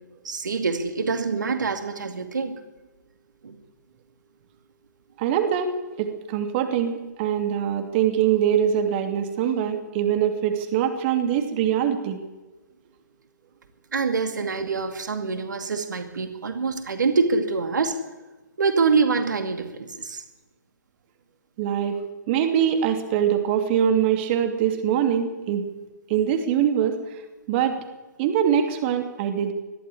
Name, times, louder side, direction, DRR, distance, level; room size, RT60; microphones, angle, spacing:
voice 1, 0.2-2.6 3.4-3.6 13.9-18.0 18.6-20.2, right 4 dB, 70° right, 7 dB, 2.5 m, -25 dB
voice 2, 5.2-12.2 21.6-25.7 26.1-27.2 27.5-27.8 28.2-29.5, right 9 dB, 35° right, 6 dB, 2.8 m, -23 dB
21.0 x 13.5 x 9.9 m, 1.1 s
figure-of-eight pair, 130°, 10 cm